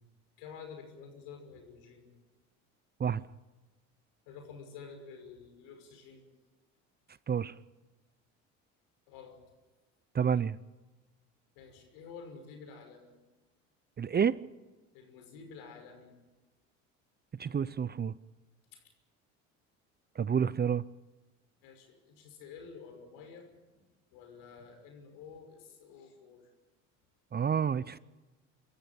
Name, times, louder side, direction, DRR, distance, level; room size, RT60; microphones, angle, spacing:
voice 1, 0.4-2.1 4.3-6.3 9.1-9.4 11.5-13.1 14.9-16.1 18.7-18.8 21.6-23.8 24.1-26.5, left 5 dB, 75° left, 4 dB, 6.1 m, -50 dB
voice 2, 10.1-10.6 14.0-14.4 17.4-18.1 20.2-20.8 27.3-28.0, right 7 dB, 25° right, 19 dB, 0.7 m, -29 dB
26.0 x 14.0 x 9.0 m, 1.2 s
hypercardioid pair, 70°, 38 cm